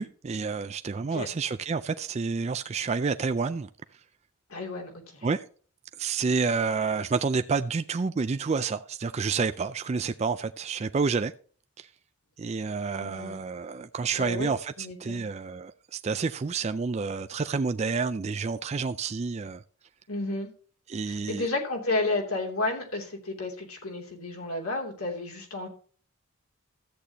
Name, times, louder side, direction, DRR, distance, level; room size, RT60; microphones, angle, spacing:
voice 1, 0.0-3.7 5.2-5.5 6.0-11.3 11.8-11.9 12.4-19.6 20.9-21.5, right 4 dB, 30° right, 0.3 m, -29 dB
voice 2, 4.5-5.3 13.0-13.3 14.2-14.5 14.8-15.2 20.1-20.5 21.1-25.7, left 2 dB, 80° left, 3.0 m, -32 dB
13.5 x 8.3 x 2.9 m
head